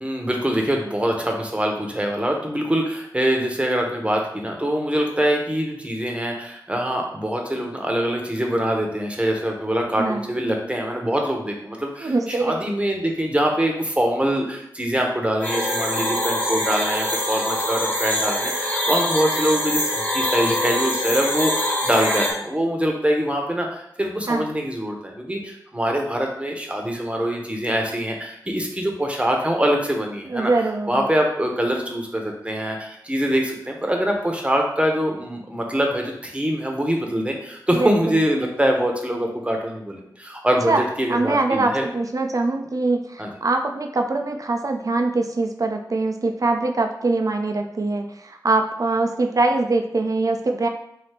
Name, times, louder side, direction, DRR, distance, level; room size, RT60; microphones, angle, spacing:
voice 1, 0.0-30.5 30.9-41.8 43.2-43.3, equal, 15° right, 1 dB, 0.9 m, -24 dB
voice 2, 10.0-10.3 12.0-12.6 24.3-24.4 30.3-31.1 37.7-38.2 40.7-40.8 41.1-50.7, right 3 dB, 50° right, 5 dB, 0.5 m, -23 dB
sound 1, 15.4-22.3, left 1 dB, 20° left, 1.1 m, -24 dB
3.4 x 2.7 x 4.3 m, 0.76 s
cardioid pair, 45°, 7 cm